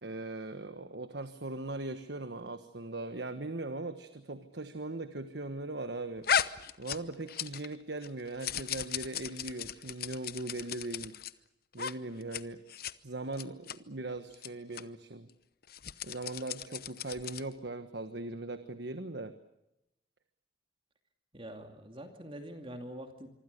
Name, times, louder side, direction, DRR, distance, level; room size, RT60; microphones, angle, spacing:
voice 1, 0.0-6.3 6.8-11.2 11.7-12.6 13.0-15.3 16.0-19.4, right 2 dB, 65° right, 10 dB, 1.4 m, -39 dB
sound 1, 6.2-7.8 8.0-11.3 11.7-11.9 12.2-12.4 12.7-12.9 13.3-13.8 14.3-14.5 14.7-14.8 15.6-17.5, left 8 dB, 55° left, 0.9 m, -35 dB
voice 2, 21.3-23.3, right 1 dB, 30° right, 5 dB, 2.6 m, -45 dB
26.0 x 24.5 x 6.7 m, 0.85 s
head